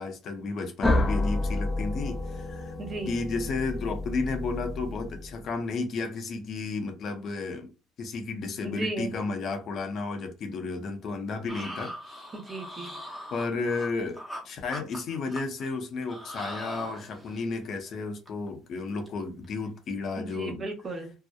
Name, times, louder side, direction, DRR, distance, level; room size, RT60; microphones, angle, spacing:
voice 1, 0.0-2.7 3.1-7.7 8.0-11.9 13.3-14.2 14.4-20.7, left 3 dB, 50° left, 0.7 m, -32 dB
sound 1, 0.8-5.5, left 2 dB, 15° left, 0.4 m, -30 dB
voice 2, 2.8-3.1 8.6-9.1 12.3-13.0 20.2-21.1, right 2 dB, 30° right, 0.7 m, -35 dB
sound 2, 11.5-14.4 14.7-15.7 16.0-17.5 17.8-18.0 18.3-18.5 18.8-19.1 19.4-19.7, equal, ahead, 0.8 m, -40 dB
2.6 x 2.0 x 2.3 m
cardioid pair, 105°, 0 cm